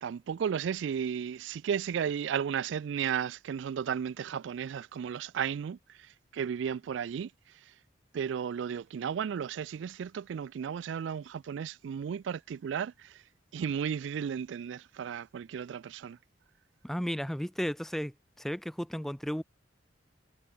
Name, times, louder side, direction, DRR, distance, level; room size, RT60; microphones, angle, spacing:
voice 1, 0.0-5.8 6.3-7.3 8.1-13.2 13.5-16.2, right 7 dB, 75° right, 0.3 m, -34 dB
voice 2, 16.8-19.4, equal, ahead, 0.6 m, -34 dB
head